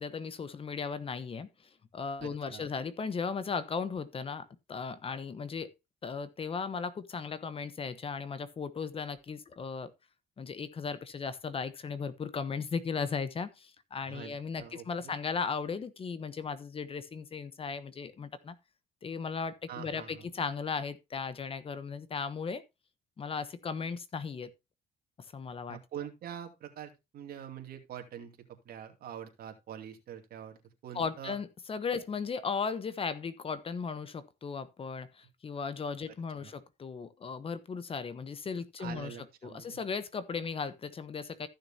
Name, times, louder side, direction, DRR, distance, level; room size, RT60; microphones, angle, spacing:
voice 1, 0.0-1.5 1.9-5.7 6.0-9.9 10.4-18.6 19.0-22.6 23.2-24.5 25.2-25.8 30.9-39.2 39.4-41.5, left 5 dB, 35° left, 1.1 m, -36 dB
voice 2, 2.2-2.7 14.1-14.3 14.6-15.1 19.7-20.3 25.7-30.6 30.8-31.4 36.4-36.5 38.8-39.8, right 9 dB, 65° right, 2.6 m, -45 dB
15.0 x 6.6 x 2.7 m
cardioid pair, 110°, 17 cm